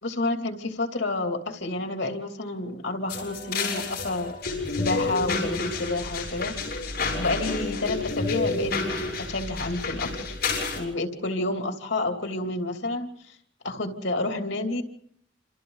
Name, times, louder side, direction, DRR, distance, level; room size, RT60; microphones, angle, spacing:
voice 1, 0.0-4.4 4.7-6.9 7.2-8.7 9.3-10.4 10.7-13.1 13.6-14.8, left 2 dB, 85° left, 4 dB, 2.9 m, -29 dB
sound 1, 3.1-10.8, left 3 dB, 60° left, 7.0 m, -30 dB
28.5 x 27.5 x 4.0 m, 0.67 s
head